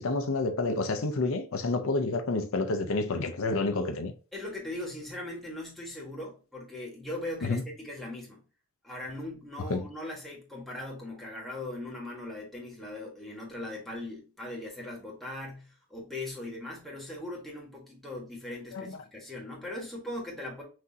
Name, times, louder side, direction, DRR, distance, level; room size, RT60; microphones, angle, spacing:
voice 1, 0.0-4.1 7.4-7.6 9.7-9.9 18.7-19.0, left 3 dB, 65° left, 0.5 m, -29 dB
voice 2, 4.3-8.4 8.8-20.6, left 1 dB, ahead, 1.4 m, -39 dB
6.0 x 2.7 x 2.7 m
head